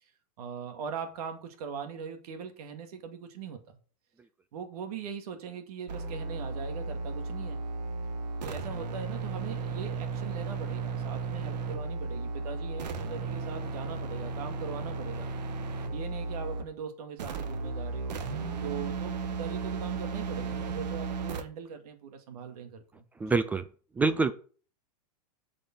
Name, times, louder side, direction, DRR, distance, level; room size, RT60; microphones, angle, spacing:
voice 1, 0.4-3.6 4.5-7.6 8.4-15.3 15.9-18.2 18.6-23.4, right 6 dB, 65° right, 2.1 m, -41 dB
sound 1, 5.9-16.7 17.2-21.4, right 4 dB, 85° right, 1.5 m, -35 dB
voice 2, 23.2-23.6 24.0-24.3, right 4 dB, 10° right, 0.3 m, -25 dB
8.4 x 5.2 x 6.0 m
supercardioid pair, 150°, 21 cm